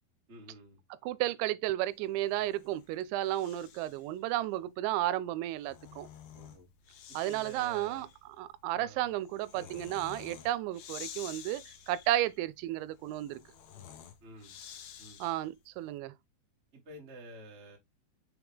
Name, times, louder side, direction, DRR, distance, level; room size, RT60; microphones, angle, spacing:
voice 1, 0.3-0.8 6.3-6.7 7.1-8.1 8.7-9.1 9.5-9.8 14.2-14.5 15.0-15.2 16.7-17.8, equal, 30° right, 1.3 m, -50 dB
voice 2, 1.0-6.1 7.1-8.1 8.4-13.4 15.2-16.1, right 14 dB, 85° right, 2.9 m, -33 dB
Breathing, 2.1-4.1 5.4-15.6, left 9 dB, 85° left, 1.8 m, -51 dB
6.2 x 4.8 x 3.5 m
omnidirectional pair, 5.2 m